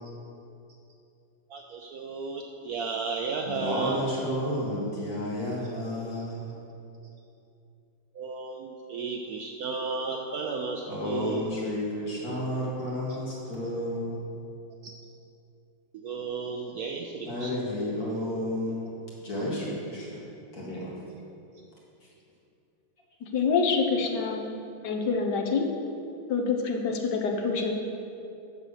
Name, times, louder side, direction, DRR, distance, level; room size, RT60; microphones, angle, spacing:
voice 1, 1.5-4.0 8.1-11.5 14.8-14.9 16.0-17.5, right 4 dB, 65° right, 2 dB, 1.0 m, -34 dB
voice 2, 3.5-6.5 10.9-14.2 17.3-18.9 19.2-20.2 20.5-20.9, left 1 dB, 55° left, -6 dB, 2.4 m, -31 dB
voice 3, 23.3-24.5 24.8-25.6 26.3-27.7, left 5 dB, 70° left, 2 dB, 1.6 m, -26 dB
8.9 x 6.9 x 6.5 m, 2.7 s
omnidirectional pair, 1.9 m